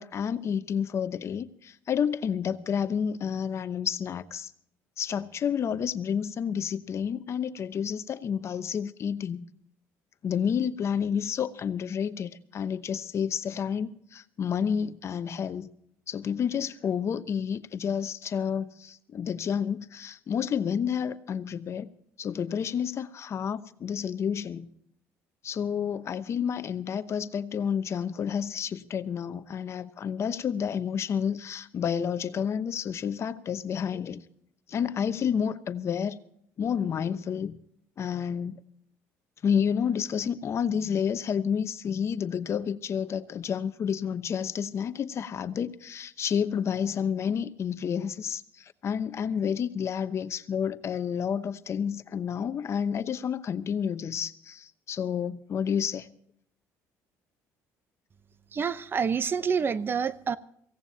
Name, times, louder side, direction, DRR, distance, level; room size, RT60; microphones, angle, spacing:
voice 1, 0.0-4.5 5.0-9.4 10.2-15.7 16.1-21.9 22.2-24.7 25.4-34.2 34.7-36.2 36.6-37.6 38.0-38.6 39.4-56.1, left 7 dB, 45° left, 0.9 m, -30 dB
voice 2, 58.5-60.4, right 6 dB, 35° right, 0.8 m, -27 dB
23.5 x 16.5 x 2.8 m
supercardioid pair, 90°, 6 cm